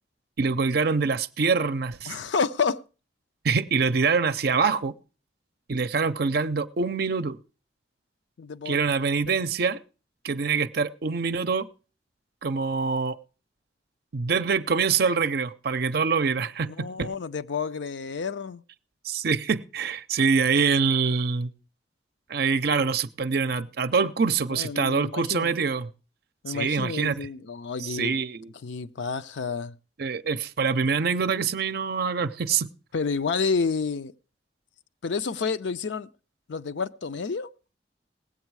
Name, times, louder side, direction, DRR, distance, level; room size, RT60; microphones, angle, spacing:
voice 1, 0.4-2.2 3.4-4.9 5.7-7.4 8.7-9.8 10.2-11.7 12.4-13.2 14.1-17.1 19.0-21.5 22.3-25.9 26.5-27.2 27.8-28.5 30.0-32.7, right 5 dB, 60° right, 0.6 m, -25 dB
voice 2, 2.1-2.8 8.4-8.8 9.3-9.4 16.7-18.6 24.5-25.5 26.4-28.2 28.6-29.8 32.9-34.1 35.0-36.1 36.5-37.5, left 5 dB, 80° left, 0.5 m, -29 dB
18.5 x 8.1 x 4.6 m
head